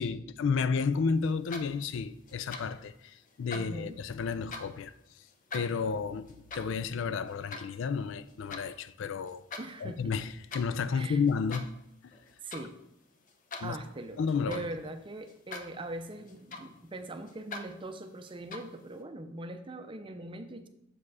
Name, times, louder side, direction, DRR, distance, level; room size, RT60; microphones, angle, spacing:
voice 1, 0.0-4.9 5.5-9.4 9.8-11.7 13.6-13.8 14.2-14.6, left 5 dB, 65° left, 0.3 m, -31 dB
sound 1, 1.3-2.0 2.3-2.9 3.2-4.8 5.3-8.7 9.1-9.7 10.0-10.7 11.3-11.9 12.1-12.7 13.0-14.8 15.3-15.8 16.1-16.9 17.3-17.7 18.3-18.8, left 3 dB, 40° left, 0.7 m, -44 dB
voice 2, 3.5-4.0 9.6-10.1 10.9-11.2 12.4-12.8 13.6-20.7, right 2 dB, 25° right, 0.5 m, -41 dB
7.4 x 4.8 x 4.8 m
head